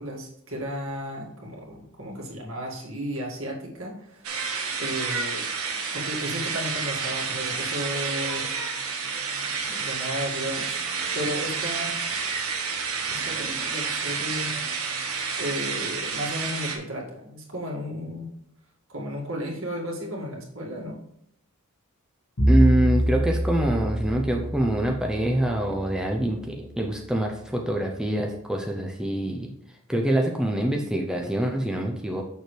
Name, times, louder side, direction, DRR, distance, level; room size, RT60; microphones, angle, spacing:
voice 1, 0.0-4.3 4.8-5.5 5.9-8.5 9.7-10.8 11.1-12.0 13.1-14.5 15.4-18.3 18.9-21.0, equal, 65° right, -2 dB, 2.1 m, -34 dB
sound 1, 4.2-16.8, right 5 dB, 85° right, 1.3 m, -30 dB
Bowed string instrument, 22.4-26.6, equal, 85° left, 1.5 m, -25 dB
voice 2, 22.5-29.5 29.9-32.2, right 1 dB, 5° right, 1 dB, 0.5 m, -25 dB
6.6 x 6.4 x 3.3 m, 0.74 s
head